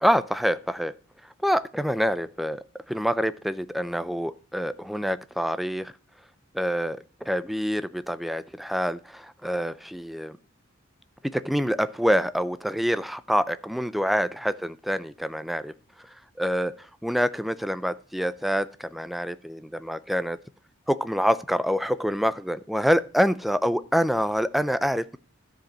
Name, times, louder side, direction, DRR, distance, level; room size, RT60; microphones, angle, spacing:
voice 1, 0.0-0.9 1.2-5.9 6.5-10.4 11.2-20.4 20.9-25.2, equal, ahead, 14 dB, 0.4 m, -26 dB
13.5 x 5.1 x 6.0 m, 0.38 s
head